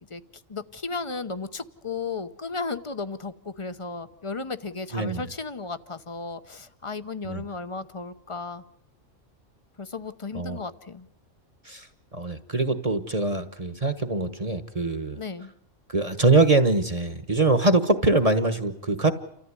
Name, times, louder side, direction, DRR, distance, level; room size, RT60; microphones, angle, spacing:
voice 1, 0.5-8.6 9.8-11.1 15.1-15.5, left 4 dB, 25° left, 12 dB, 0.9 m, -34 dB
voice 2, 4.9-5.2 7.2-7.4 10.3-10.6 11.6-11.9 12.1-15.2 15.9-19.1, right 2 dB, 30° right, 10 dB, 1.3 m, -23 dB
29.5 x 14.5 x 9.7 m, 0.76 s
omnidirectional pair, 1.3 m